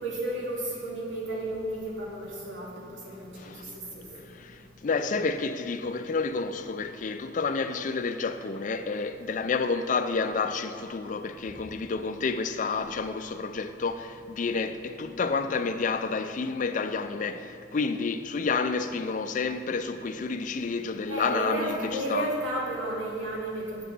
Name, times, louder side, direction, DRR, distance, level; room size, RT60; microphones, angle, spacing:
voice 1, 0.0-4.0 21.1-23.8, right 1 dB, 80° right, 2.3 m, -33 dB
voice 2, 4.3-21.7 22.1-22.3, left 4 dB, 40° left, 0.4 m, -30 dB
8.2 x 7.0 x 6.0 m
head